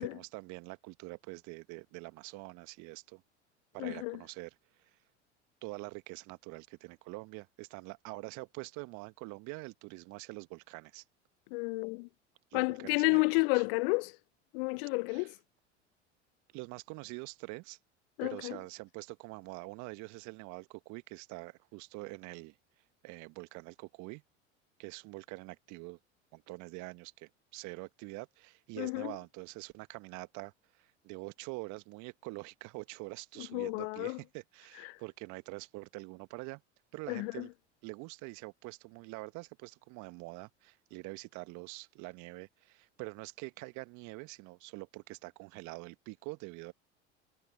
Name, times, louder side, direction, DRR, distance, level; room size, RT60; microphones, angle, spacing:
voice 1, 0.1-3.2 3.7-4.5 5.6-11.0 12.5-13.6 15.1-15.4 16.5-17.8 18.2-22.6 23.0-24.2 24.8-26.0 26.3-36.6 36.9-37.5 37.8-46.7, right 25 dB, 55° right, 1.4 m, -45 dB
voice 2, 3.8-4.2 11.5-12.1 12.5-14.1 14.5-15.3 18.2-18.6 28.8-29.1 33.5-34.2 37.1-37.5, left 32 dB, 50° left, 0.4 m, -31 dB
figure-of-eight pair, 75°, 36 cm